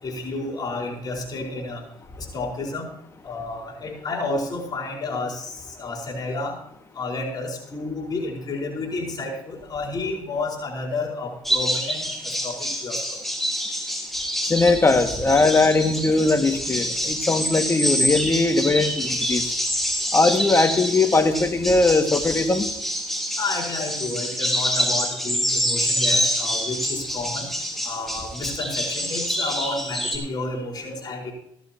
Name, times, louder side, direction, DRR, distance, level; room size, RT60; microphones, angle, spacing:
voice 1, 0.0-1.8 2.3-2.9 3.2-6.6 6.9-13.2 23.4-27.5 27.8-31.3, left 3 dB, 45° left, -1 dB, 4.7 m, -31 dB
sound 1, 11.4-30.2, equal, ahead, 4.0 m, -26 dB
voice 2, 14.4-19.5 20.1-22.7, left 3 dB, 25° left, 6 dB, 1.9 m, -20 dB
16.0 x 13.5 x 2.9 m, 0.75 s
supercardioid pair, 70°, 9 cm